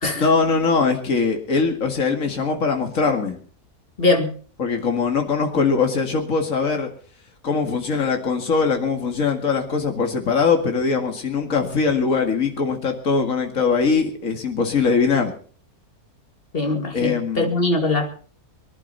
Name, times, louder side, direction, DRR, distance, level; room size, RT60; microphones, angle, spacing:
voice 1, 0.2-3.4 4.6-6.9 7.4-15.3 16.9-17.5, left 5 dB, 60° left, 4 dB, 2.5 m, -21 dB
voice 2, 4.0-4.3 16.5-18.1, left 2 dB, 35° left, 4 dB, 2.4 m, -21 dB
23.5 x 11.5 x 4.1 m, 0.42 s
omnidirectional pair, 1.6 m